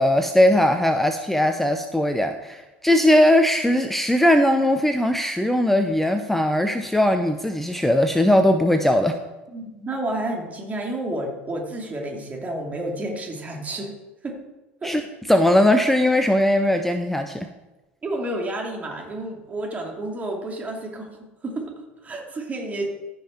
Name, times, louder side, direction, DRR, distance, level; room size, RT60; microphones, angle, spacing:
voice 1, 0.0-9.2 14.8-15.0 15.3-17.5, left 1 dB, 5° left, 8 dB, 0.6 m, -19 dB
voice 2, 9.5-13.9 14.2-14.4 14.8-14.9 18.0-21.1 21.4-21.7 22.0-22.9, right 1 dB, 25° right, 1 dB, 2.7 m, -30 dB
14.5 x 5.6 x 4.4 m, 1.1 s
hypercardioid pair, 75°, 6 cm